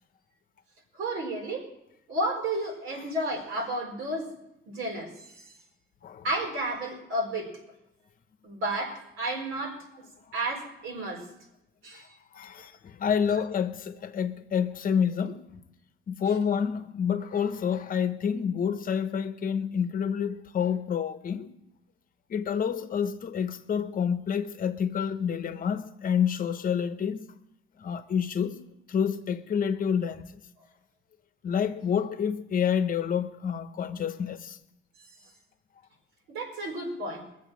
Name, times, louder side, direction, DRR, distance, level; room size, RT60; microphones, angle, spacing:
voice 1, 0.9-1.7 2.1-4.3 4.7-5.5 6.2-7.5 8.4-9.8 10.3-11.3 11.8-12.0 35.1-35.3 36.3-37.3, right 1 dB, 85° right, 4.4 m, -32 dB
voice 2, 12.3-15.4 16.1-21.5 22.3-27.2 27.8-28.6 28.9-30.3 31.4-34.6, left 7 dB, 45° left, 0.9 m, -28 dB
22.5 x 7.5 x 6.2 m
cardioid pair, 180°, 20 cm